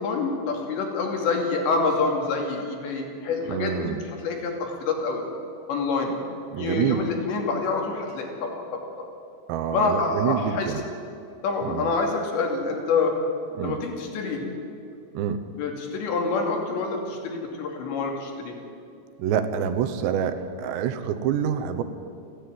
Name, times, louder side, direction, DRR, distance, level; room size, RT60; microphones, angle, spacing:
voice 1, 0.0-5.2 5.7-6.1 6.6-8.9 9.7-10.7 11.4-13.1 13.6-14.4 15.5-18.5, left 4 dB, 75° left, 1 dB, 4.8 m, -27 dB
voice 2, 3.5-4.0 6.5-7.0 9.5-10.8 11.6-11.9 13.6-13.8 15.1-15.4 19.2-21.8, right 8 dB, 80° right, 9 dB, 3.1 m, -27 dB
30.0 x 10.5 x 9.5 m, 2.5 s
omnidirectional pair, 5.2 m